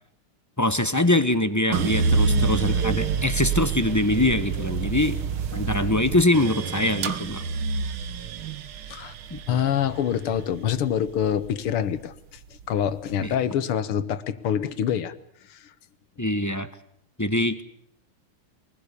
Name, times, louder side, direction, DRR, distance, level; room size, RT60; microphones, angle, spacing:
voice 1, 0.6-5.2 5.5-7.4 9.3-9.4 13.2-13.4 16.2-16.7 17.2-17.6, left 1 dB, 15° left, 10 dB, 0.6 m, -23 dB
sound 1, 1.7-11.9 12.4-13.2, right 5 dB, 70° right, 2.0 m, -27 dB
voice 2, 9.5-12.4 12.7-15.1 15.5-15.7, left 9 dB, 80° left, 12 dB, 2.1 m, -26 dB
23.0 x 20.0 x 8.3 m, 0.72 s
omnidirectional pair, 2.4 m